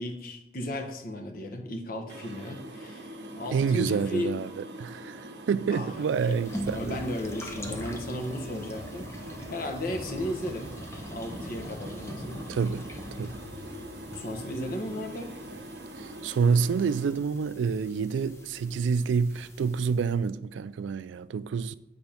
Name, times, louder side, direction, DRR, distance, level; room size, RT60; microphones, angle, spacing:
voice 1, 0.0-4.3 5.7-5.9 6.2-6.4 6.7-10.7 11.1-12.6 14.1-15.3, left 1 dB, 50° left, 1.0 m, -35 dB
sound 1, 2.1-17.1, right 1 dB, 70° right, 0.9 m, -44 dB
voice 2, 3.5-5.2 5.5-7.0 12.5-12.9 13.2-13.3 16.0-21.7, right 5 dB, 85° right, 0.3 m, -28 dB
sound 2, 5.9-20.2, left 1 dB, 15° left, 0.7 m, -42 dB
8.7 x 3.5 x 5.6 m
head